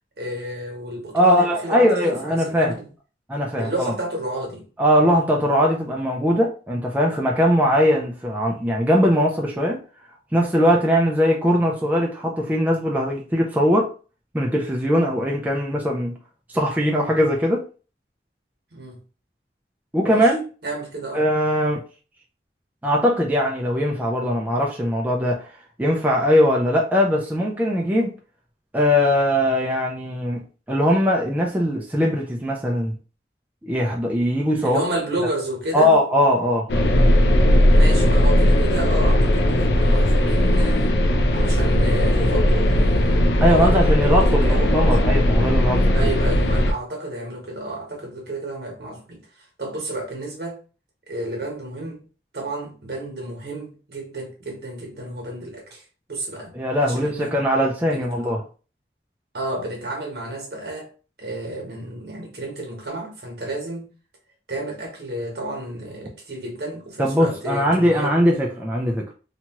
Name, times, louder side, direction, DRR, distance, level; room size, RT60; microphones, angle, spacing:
voice 1, 0.2-2.9 3.6-4.7 18.7-19.0 20.0-20.3 20.6-21.2 27.5-27.6 34.6-35.9 37.5-41.0 41.3-44.8 45.9-50.6 51.1-52.0 52.3-55.8 56.1-56.5 56.8-57.4 57.9-58.1 59.3-60.9 61.2-63.9 64.5-68.1, right 1 dB, 65° right, 1.1 m, -31 dB
voice 2, 1.1-2.8 3.3-3.9 4.8-9.8 10.3-13.9 14.3-16.2 16.5-17.7 19.9-20.4 21.1-21.8 22.8-25.5 25.8-28.1 28.7-33.0 33.6-34.8 35.7-36.7 43.4-46.1 56.5-58.4 67.0-69.1, equal, 10° right, 0.3 m, -20 dB
sound 1, 36.7-46.7, left 1 dB, 75° left, 0.4 m, -17 dB
2.9 x 2.3 x 2.9 m
head